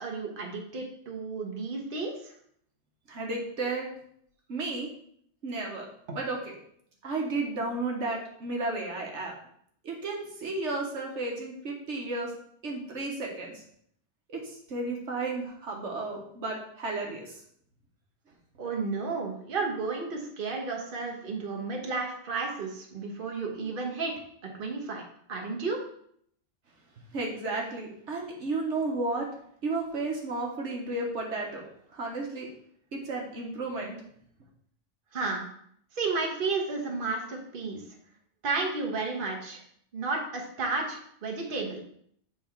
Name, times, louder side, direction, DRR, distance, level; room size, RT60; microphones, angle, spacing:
voice 1, 0.0-2.3 6.1-6.2 18.6-24.1 24.6-25.0 25.3-25.8 35.1-35.4 35.9-37.8 38.4-39.6 39.9-41.8, right 4 dB, 50° right, 0 dB, 1.3 m, -32 dB
voice 2, 3.1-3.9 4.5-4.9 5.4-5.9 6.1-6.5 7.0-9.3 9.8-12.3 12.6-13.6 14.3-17.4 27.1-29.3 29.6-31.6 31.9-32.5 32.9-33.9, right 3 dB, 75° right, -1 dB, 1.4 m, -33 dB
7.7 x 3.7 x 4.5 m, 0.66 s
omnidirectional pair, 1.2 m